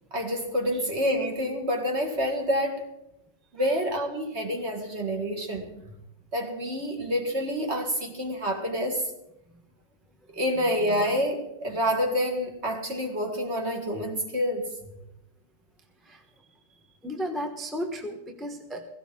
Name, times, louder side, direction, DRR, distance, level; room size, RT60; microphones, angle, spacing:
voice 1, 0.1-2.9 3.5-5.7 6.3-9.0 10.3-14.7, equal, 35° right, 3 dB, 2.1 m, -28 dB
voice 2, 17.0-18.9, equal, ahead, 4 dB, 0.8 m, -34 dB
17.0 x 16.0 x 3.8 m, 0.85 s
omnidirectional pair, 2.2 m